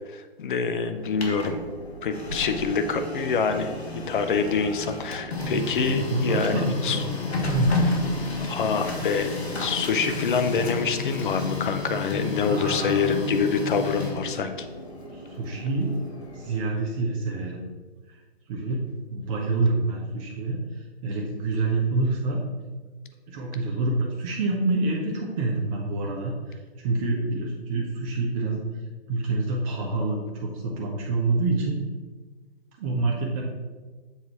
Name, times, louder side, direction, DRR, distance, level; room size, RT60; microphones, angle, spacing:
voice 1, 0.1-1.6 2.0-7.0 8.5-14.7, left 5 dB, 50° left, 8 dB, 0.7 m, -26 dB
Printer, 0.9-16.7, left 3 dB, 75° left, 1.6 m, -32 dB
voice 2, 5.8-7.8 12.5-13.3 15.1-15.9 16.3-17.6 18.1-18.2 18.5-18.8 19.1-22.4 23.3-28.6 29.1-31.8 32.8-33.4, right 3 dB, 30° right, -2 dB, 0.9 m, -27 dB
7.2 x 3.9 x 4.4 m, 1.4 s
figure-of-eight pair, 130°, 32 cm